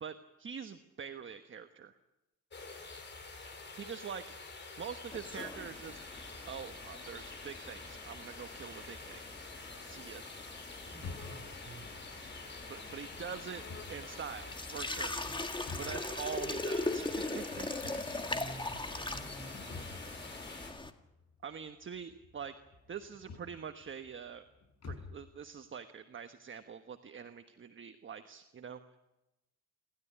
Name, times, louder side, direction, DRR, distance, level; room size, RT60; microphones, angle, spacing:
voice 1, 0.0-2.0 3.7-6.0 6.4-9.2 9.8-10.2 12.7-13.6 13.9-15.2 15.8-18.4 21.4-22.5 22.9-24.4 24.9-28.8, right 7 dB, 40° right, 8 dB, 1.3 m, -44 dB
sound 1, 2.5-20.7, left 3 dB, 35° left, 5.9 m, -47 dB
sound 2, 5.1-20.9, left 2 dB, 15° left, 1.9 m, -41 dB
sound 3, 10.9-25.3, left 4 dB, 55° left, 6.6 m, -51 dB
voice 2, 10.9-12.5 15.2-15.4 15.7-16.0 18.3-20.2, right 2 dB, 15° right, 2 dB, 7.6 m, -52 dB
28.5 x 13.0 x 9.9 m, 0.98 s
cardioid pair, 90°, 30 cm